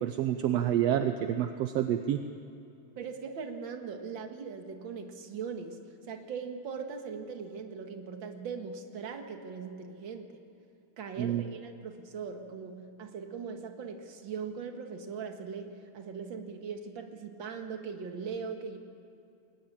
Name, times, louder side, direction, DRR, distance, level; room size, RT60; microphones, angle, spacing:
voice 1, 0.0-2.2 11.2-11.5, right 11 dB, 70° right, 8 dB, 1.6 m, -28 dB
voice 2, 3.0-5.8 6.1-10.3 11.0-18.8, right 5 dB, 45° right, 5 dB, 2.0 m, -40 dB
22.0 x 19.5 x 8.7 m, 2.7 s
omnidirectional pair, 3.6 m